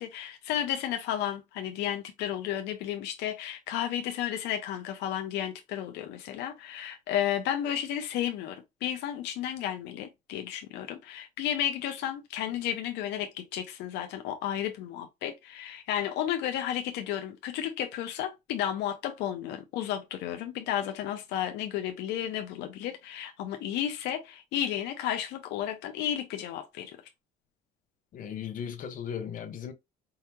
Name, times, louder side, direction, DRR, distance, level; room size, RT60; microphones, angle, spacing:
voice 1, 0.0-27.0, left 10 dB, 85° left, 0.6 m, -33 dB
voice 2, 28.1-29.7, left 8 dB, 55° left, 0.9 m, -37 dB
4.7 x 2.8 x 2.3 m
cardioid pair, 110°, 17 cm